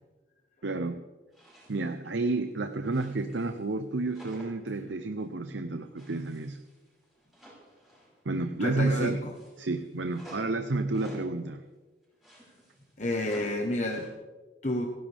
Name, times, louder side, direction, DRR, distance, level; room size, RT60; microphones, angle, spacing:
voice 1, 0.6-1.0 1.7-6.6 8.2-9.2 9.6-11.6, right 2 dB, 80° right, 8 dB, 0.8 m, -30 dB
sound 1, 1.3-2.0 2.3-3.7 4.1-4.7 5.1-5.3 5.9-8.3 8.6-11.4 12.0-14.1, right 1 dB, ahead, 5.5 m, -52 dB
voice 2, 8.6-9.3 13.0-14.1 14.6-14.9, left 1 dB, 40° left, 1 dB, 1.3 m, -30 dB
28.5 x 10.5 x 3.6 m, 1.3 s
head